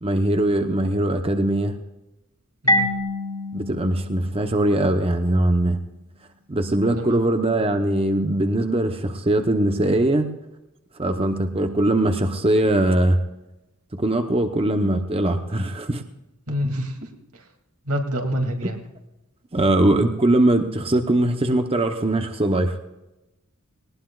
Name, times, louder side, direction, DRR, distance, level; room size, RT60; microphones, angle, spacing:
voice 1, 0.0-1.8 3.5-5.8 6.5-10.3 11.0-13.2 13.9-16.0 19.5-22.8, right 1 dB, 25° right, 6 dB, 0.9 m, -21 dB
Marimba xylophone, 2.7-5.3, left 1 dB, 20° left, 2.2 m, -26 dB
voice 2, 16.5-17.5 17.8-18.8, equal, 80° right, 3 dB, 2.6 m, -27 dB
19.5 x 19.5 x 2.4 m, 0.97 s
head